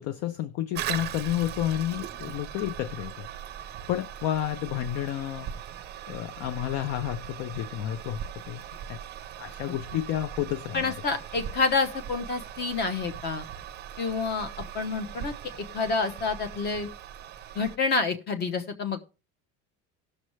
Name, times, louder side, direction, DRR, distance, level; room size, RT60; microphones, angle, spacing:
voice 1, 0.0-3.3 3.6-5.5 6.1-9.0 9.4-10.9, left 12 dB, 45° left, 0.5 m, -31 dB
Toilet flush, 0.7-17.8, right 10 dB, 30° right, 0.6 m, -40 dB
voice 2, 10.7-13.4 14.0-14.5 14.7-15.3 15.7-16.9 17.5-19.0, left 4 dB, 30° left, 1.1 m, -28 dB
18.0 x 6.6 x 3.1 m
cardioid pair, 180°, 35 cm